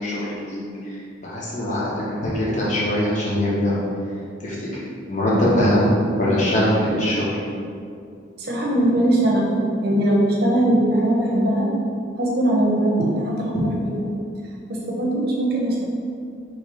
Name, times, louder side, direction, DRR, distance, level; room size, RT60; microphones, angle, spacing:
voice 1, 0.0-3.8 4.4-7.4, left 1 dB, 35° left, -7 dB, 1.1 m, -22 dB
voice 2, 8.4-9.5 9.8-11.7 12.2-14.0 14.7-15.8, right 1 dB, 55° right, -3 dB, 0.8 m, -20 dB
3.3 x 3.2 x 4.8 m, 2.4 s
head